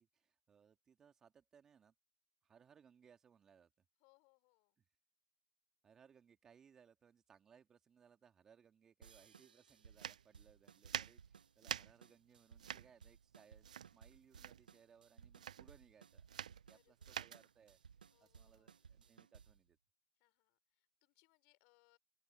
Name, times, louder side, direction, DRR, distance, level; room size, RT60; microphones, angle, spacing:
voice 1, 0.0-1.9 2.4-3.7 5.8-16.3 16.6-17.8 18.2-19.8, right 7 dB, 10° right, 2.0 m, -67 dB
voice 2, 4.0-4.8 16.6-17.2 18.1-18.8 20.2-22.0, left 31 dB, 25° left, 5.7 m, -75 dB
sound 1, 9.0-19.7, right 6 dB, 70° right, 0.9 m, -62 dB
sound 2, 9.9-19.2, right 9 dB, 55° right, 0.4 m, -48 dB
open air
hypercardioid pair, 150°, 5 cm